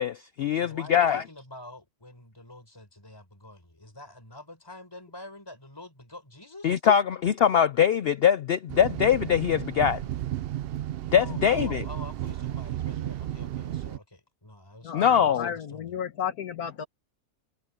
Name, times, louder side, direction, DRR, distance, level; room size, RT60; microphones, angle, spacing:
voice 1, 0.0-1.2 6.6-10.0 11.1-11.8 14.9-15.5, left 8 dB, 70° left, 0.5 m, -22 dB
voice 2, 0.5-6.8 11.0-16.0, left 1 dB, 15° left, 4.7 m, -47 dB
sound 1, 8.7-14.0, right 12 dB, 75° right, 0.5 m, -33 dB
voice 3, 14.8-16.9, left 8 dB, 85° left, 1.8 m, -33 dB
omnidirectional pair, 1.5 m